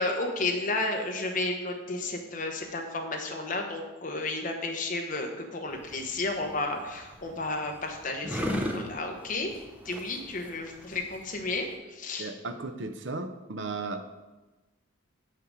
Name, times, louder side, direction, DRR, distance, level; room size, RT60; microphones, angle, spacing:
voice 1, 0.0-9.5 9.8-12.3, left 2 dB, 40° left, 3 dB, 1.0 m, -32 dB
sound 1, 5.7-11.8, equal, 5° right, 0.6 m, -37 dB
voice 2, 12.2-14.0, right 3 dB, 60° right, 9 dB, 0.6 m, -35 dB
5.6 x 5.2 x 6.3 m, 1.2 s
head